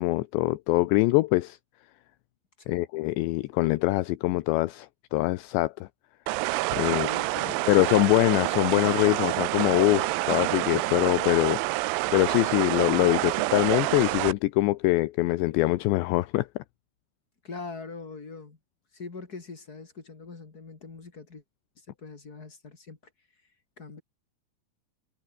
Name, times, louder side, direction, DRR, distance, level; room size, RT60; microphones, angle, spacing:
voice 1, 0.0-1.6 2.7-5.9 6.7-7.1 7.5-16.6, left 19 dB, 80° left, 2.9 m, -24 dB
sound 1, 6.3-14.3, right 21 dB, 85° right, 3.1 m, -28 dB
voice 2, 6.8-7.7 17.4-18.6 18.9-21.4 21.9-23.0 23.8-24.0, left 4 dB, 30° left, 2.0 m, -42 dB
omnidirectional pair, 5.4 m